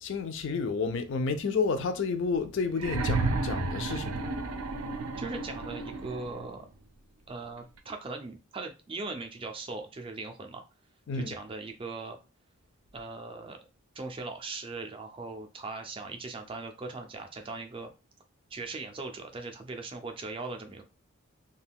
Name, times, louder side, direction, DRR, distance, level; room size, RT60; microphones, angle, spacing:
voice 1, 0.0-4.1 11.1-11.3, left 4 dB, 55° left, 0.4 m, -30 dB
sound 1, 2.7-6.6 7.8-7.9, right 3 dB, 85° right, 0.5 m, -32 dB
voice 2, 5.2-6.7 7.3-10.6 11.3-12.2 12.9-13.6 13.9-17.9 18.5-20.8, right 3 dB, 25° right, 0.4 m, -39 dB
2.3 x 2.2 x 3.4 m
head